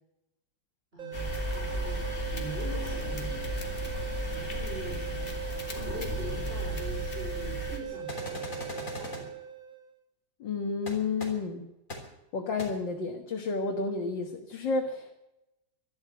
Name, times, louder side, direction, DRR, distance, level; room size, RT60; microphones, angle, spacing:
voice 1, 0.9-3.3 4.3-9.4, right 2 dB, 30° right, -5 dB, 4.0 m, -43 dB
sound 1, 1.0-9.9, right 9 dB, 55° right, 1.5 m, -39 dB
sound 2, 1.1-7.8, left 1 dB, 30° left, 2.7 m, -34 dB
sound 3, 8.1-9.2 10.9-11.0 11.2-11.3 11.9-12.0 12.6-12.7, left 1 dB, 45° left, 3.9 m, -38 dB
voice 2, 10.4-11.6 12.3-15.1, left 4 dB, 85° left, 2 dB, 2.3 m, -31 dB
13.0 x 12.5 x 8.0 m, 0.90 s
omnidirectional pair, 1.9 m